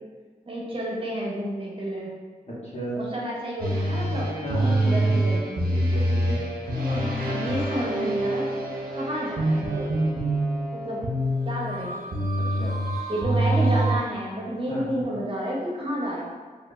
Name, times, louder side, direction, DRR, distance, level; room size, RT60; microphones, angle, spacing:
voice 1, 0.5-2.1 2.9-4.3 4.8-5.6 6.7-8.4 8.9-9.9 10.8-11.0 11.4-12.0 13.1-16.3, equal, 35° right, -5 dB, 0.9 m, -30 dB
voice 2, 2.6-3.0 4.4-5.2 5.7-6.4 12.6-12.7 14.7-15.0, equal, 45° left, -7 dB, 1.2 m, -32 dB
sound 1, 3.6-14.0, right 1 dB, 75° right, 0.7 m, -25 dB
4.3 x 2.5 x 2.6 m, 1.5 s
cardioid pair, 55°, 15 cm